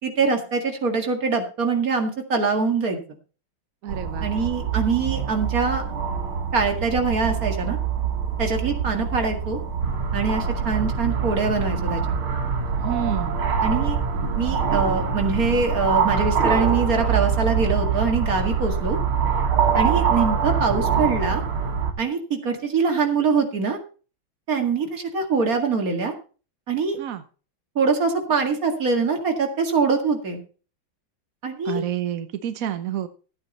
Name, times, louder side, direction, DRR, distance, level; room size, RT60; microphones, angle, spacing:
voice 1, 0.0-3.0 4.2-5.8 6.5-7.8 8.4-9.6 10.1-12.2 13.6-14.0 14.4-19.0 19.7-21.4 22.0-23.8 24.5-26.1 26.7-27.0 27.8-30.4 31.4-31.8, right 4 dB, 45° right, 4 dB, 2.4 m, -23 dB
voice 2, 3.8-4.3 12.8-13.4 27.0-27.2 31.6-33.1, right 10 dB, 60° right, 9 dB, 0.9 m, -29 dB
sound 1, 3.9-21.9, right 6 dB, 85° right, 2.6 m, -24 dB
14.0 x 8.9 x 4.2 m, 0.37 s
omnidirectional pair, 2.3 m